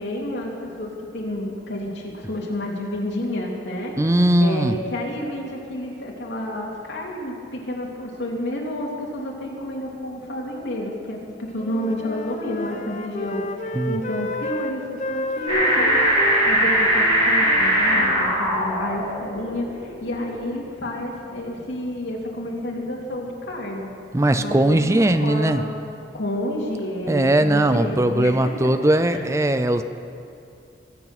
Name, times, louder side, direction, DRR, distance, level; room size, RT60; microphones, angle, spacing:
voice 1, 0.0-4.1 4.4-16.0 16.5-23.9 24.4-25.7 26.1-29.3, left 1 dB, 80° left, -2 dB, 2.7 m, -30 dB
voice 2, 4.0-4.8 13.7-14.0 24.1-25.6 27.1-29.8, right 1 dB, 15° right, 10 dB, 0.4 m, -19 dB
Wind instrument woodwind instrument, 11.6-18.4, left 1 dB, 40° left, 0.7 m, -31 dB
sound 1, 15.5-21.6 22.1-22.2, right 1 dB, 35° right, 4.4 m, -21 dB
22.5 x 8.5 x 6.0 m, 2.5 s
head